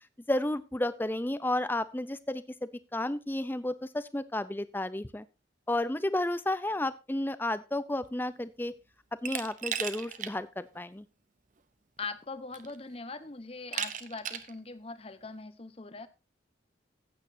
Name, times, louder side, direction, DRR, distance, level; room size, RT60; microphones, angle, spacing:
voice 1, 0.3-2.4 2.9-5.2 5.7-8.7 9.2-11.0, left 1 dB, 10° left, 14 dB, 0.5 m, -32 dB
Glass, 9.2-10.3 10.7-10.8 12.0-12.1 12.5-12.9 13.7-14.5, right 8 dB, 40° right, 0.8 m, -36 dB
voice 2, 12.0-16.1, left 3 dB, 30° left, 12 dB, 0.8 m, -41 dB
14.5 x 8.8 x 2.7 m, 0.27 s
head